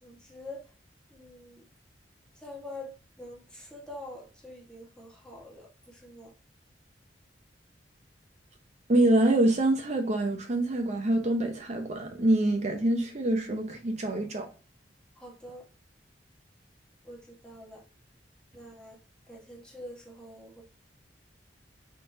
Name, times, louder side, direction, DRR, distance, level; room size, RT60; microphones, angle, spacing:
voice 1, 0.0-0.6 1.1-1.6 2.4-6.3 15.2-15.6 17.0-17.8 18.5-19.0 19.3-20.6, left 1 dB, 5° left, 1.3 m, -45 dB
voice 2, 8.9-14.5, right 1 dB, 40° right, 0.7 m, -25 dB
4.2 x 3.7 x 2.6 m
head